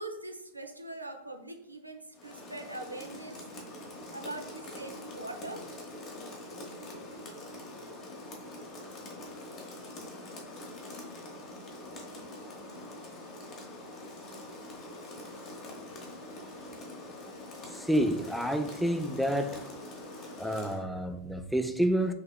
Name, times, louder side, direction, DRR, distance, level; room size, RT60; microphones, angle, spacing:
voice 1, 0.0-3.4 4.1-5.6, right 2 dB, 85° right, 0.5 m, -42 dB
Rain, 2.1-20.8, left 1 dB, 35° left, 0.9 m, -44 dB
voice 2, 17.7-19.7 20.4-22.1, equal, ahead, 0.3 m, -29 dB
5.6 x 2.8 x 2.3 m
figure-of-eight pair, 90°, 0 cm